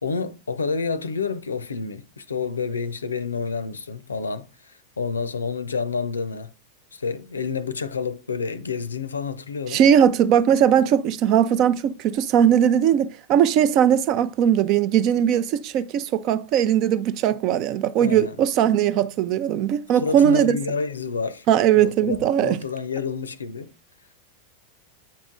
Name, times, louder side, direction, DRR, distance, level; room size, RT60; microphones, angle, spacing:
voice 1, 0.0-6.5 6.9-9.8 18.0-18.4 20.0-21.4 21.7-23.7, left 5 dB, 75° left, 0.6 m, -29 dB
voice 2, 9.7-20.6 21.5-22.6, right 9 dB, 40° right, 0.5 m, -19 dB
8.7 x 4.9 x 3.7 m
figure-of-eight pair, 90°, 0 cm